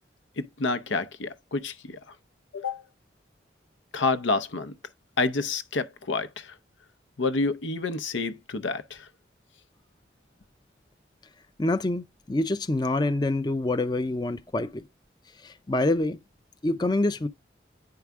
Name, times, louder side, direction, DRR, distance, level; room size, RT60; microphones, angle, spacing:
voice 1, 0.4-2.0 2.5-2.8 3.9-4.7 5.2-6.5 7.2-9.1, left 3 dB, 90° left, 0.7 m, -28 dB
voice 2, 11.6-14.8 15.4-16.2 16.6-17.3, left 2 dB, 25° left, 0.5 m, -26 dB
9.3 x 4.7 x 3.5 m
head